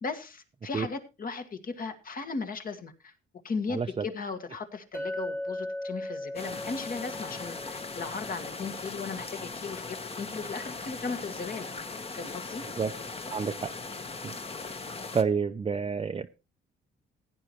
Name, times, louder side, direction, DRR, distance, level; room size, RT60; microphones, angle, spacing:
voice 1, 0.0-3.1 3.4-11.8 12.1-12.6, left 4 dB, 45° left, 1.7 m, -37 dB
voice 2, 3.7-4.0 12.8-12.9 13.3-13.7 14.2-14.4 15.1-16.3, right 5 dB, 30° right, 0.6 m, -29 dB
Chink clink, 4.9-9.1, left 1 dB, 15° left, 1.6 m, -38 dB
sound 1, 6.4-15.2, left 3 dB, 30° left, 1.2 m, -39 dB
16.0 x 9.7 x 3.0 m
cardioid pair, 90°, 20 cm